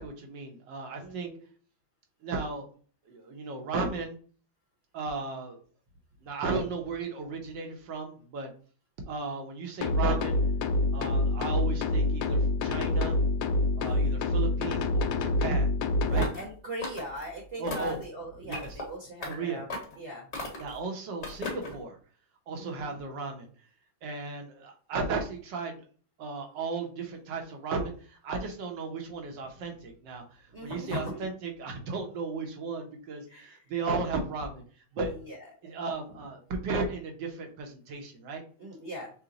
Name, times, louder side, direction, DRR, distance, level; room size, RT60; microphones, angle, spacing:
voice 1, 0.0-1.3 2.2-2.7 3.0-4.2 4.9-5.6 6.2-8.5 9.1-10.4 10.9-13.2 13.8-15.7 16.1-16.3 17.6-18.0 18.4-18.8 19.2-19.9 20.6-22.0 22.5-23.5 24.0-25.8 26.2-34.6 34.9-35.1 35.6-38.4, right 4 dB, 65° right, 3 dB, 1.5 m, -35 dB
voice 2, 1.0-1.5 16.0-19.7 20.0-20.3 22.6-23.0 30.5-31.3 33.3-33.6 35.2-35.4 38.6-39.1, equal, 40° right, -2 dB, 1.1 m, -39 dB
sound 1, 9.8-16.2, left 2 dB, 80° left, 1.4 m, -26 dB
sound 2, 16.1-16.5 16.8-17.3 17.7-18.0 18.5-18.9 19.2-19.4 19.7-20.0 20.3-20.8 21.2-21.8, left 2 dB, 40° left, 1.6 m, -37 dB
5.7 x 2.2 x 3.8 m, 0.42 s
omnidirectional pair, 2.2 m